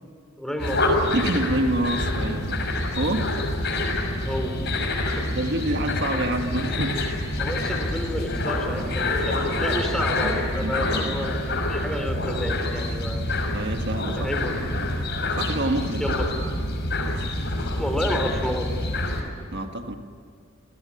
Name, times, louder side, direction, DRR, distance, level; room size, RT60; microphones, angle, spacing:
voice 1, 0.4-1.1 3.4-3.5 4.2-4.6 5.1-5.3 7.4-11.4 11.6-13.3 14.2-14.6 16.0-16.3 17.8-18.7, equal, ahead, 6 dB, 3.6 m, -30 dB
sound 1, 0.6-19.2, left 1 dB, 55° left, 6.2 m, -26 dB
voice 2, 1.1-2.6 3.0-3.3 5.4-7.0 10.2-10.3 10.6-11.3 13.5-14.3 14.6-14.9 15.3-16.1 19.5-20.0, right 1 dB, 60° right, 5 dB, 1.7 m, -27 dB
29.0 x 20.0 x 9.8 m, 2.3 s
head